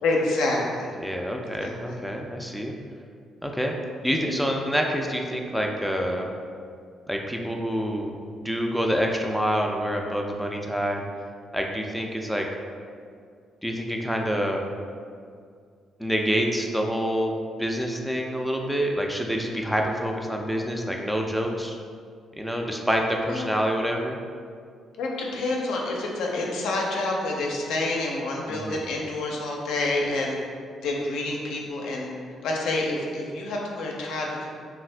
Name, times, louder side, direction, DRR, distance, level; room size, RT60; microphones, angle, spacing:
voice 1, 0.0-0.9 1.6-2.0 23.3-23.5 25.0-30.4 30.8-32.1 32.4-34.5, left 2 dB, 85° left, -2 dB, 0.5 m, -28 dB
voice 2, 1.0-2.7 3.4-3.8 4.0-6.3 7.1-11.0 11.5-12.5 13.6-14.6 16.0-21.8 22.4-24.2 28.5-28.8, equal, ahead, 1 dB, 0.3 m, -27 dB
2.6 x 2.4 x 3.2 m, 2.2 s
cardioid pair, 90°, 0 cm